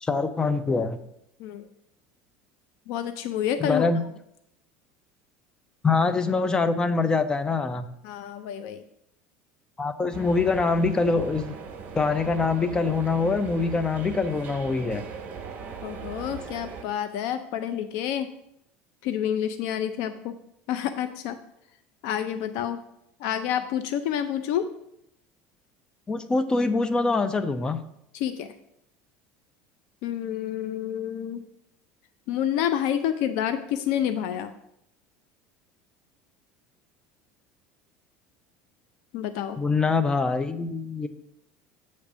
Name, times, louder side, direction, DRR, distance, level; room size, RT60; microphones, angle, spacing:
voice 1, 0.0-1.0 3.6-4.0 5.8-7.9 9.8-11.5 11.9-15.0 26.1-27.8 39.6-41.1, left 4 dB, 15° left, 11 dB, 0.5 m, -24 dB
voice 2, 2.9-3.9 8.0-8.8 15.8-18.3 19.0-20.3 20.7-21.4 22.0-22.8 23.2-24.6 28.1-28.5 30.0-31.4 32.3-34.5 39.1-39.6, left 10 dB, 70° left, 10 dB, 0.4 m, -28 dB
sound 1, 10.1-16.8, right 6 dB, 35° right, 1.1 m, -39 dB
8.2 x 3.2 x 6.0 m, 0.79 s
cardioid pair, 140°, 5 cm